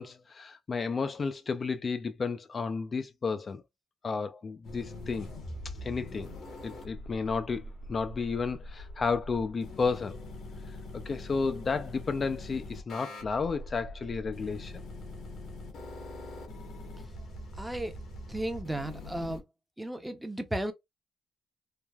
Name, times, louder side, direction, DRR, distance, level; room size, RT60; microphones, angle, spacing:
voice 1, 0.0-3.6 4.0-5.3 5.8-6.3 6.6-10.3 10.9-14.7 16.5-16.8, left 4 dB, 40° left, 0.3 m, -32 dB
sound 1, 4.6-19.4, left 1 dB, 65° left, 1.0 m, -43 dB
voice 2, 17.6-17.9 18.3-19.4 19.8-20.7, right 1 dB, 10° right, 0.6 m, -34 dB
3.2 x 2.0 x 2.2 m
cardioid pair, 90°, 0 cm